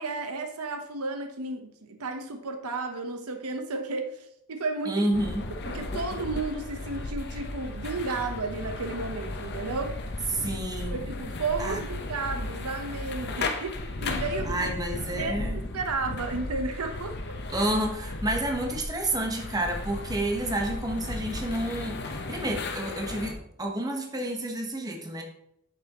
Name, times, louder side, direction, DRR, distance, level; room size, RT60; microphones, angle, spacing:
voice 1, 0.0-5.1 5.6-10.0 10.9-14.8 15.1-17.3, right 3 dB, 85° right, 6 dB, 1.0 m, -33 dB
voice 2, 4.9-5.5 10.3-11.0 11.6-11.8 14.4-15.6 17.5-25.2, right 1 dB, 15° right, 2 dB, 1.0 m, -30 dB
sound 1, 5.1-23.3, left 2 dB, 50° left, 0.8 m, -35 dB
8.5 x 6.6 x 2.9 m, 0.77 s
head